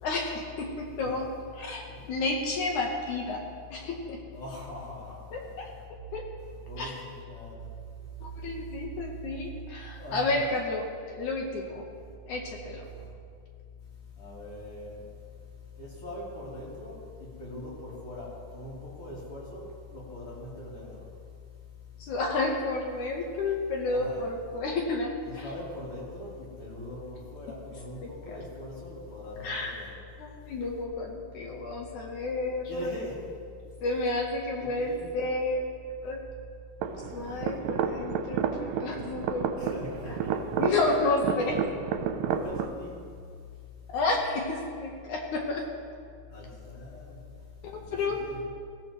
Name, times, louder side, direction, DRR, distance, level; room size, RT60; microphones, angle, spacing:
voice 1, 0.0-3.4 3.7-4.2 5.3-5.7 6.1-6.2 6.8-6.9 8.2-11.8 12.3-12.9 22.0-25.5 28.0-28.4 29.4-29.8 30.2-32.9 33.8-35.6 36.0-36.2 37.1-41.6 43.9-45.6 47.6-48.2, left 2 dB, 65° left, 0 dB, 2.4 m, -31 dB
voice 2, 4.3-5.2 6.7-7.0 7.3-7.7 10.0-10.2 12.0-12.1 13.0-13.1 14.2-15.0 15.8-19.6 19.9-21.1 23.9-24.2 25.4-29.9 32.7-33.2 34.8-35.2 39.6-40.6 42.3-43.0 46.3-47.2 47.8-48.0 48.2-48.4, left 1 dB, 40° left, -7 dB, 4.3 m, -41 dB
sound 1, 36.8-42.7, right 7 dB, 85° right, 2.4 m, -31 dB
21.0 x 14.5 x 3.1 m, 2.2 s
omnidirectional pair, 4.0 m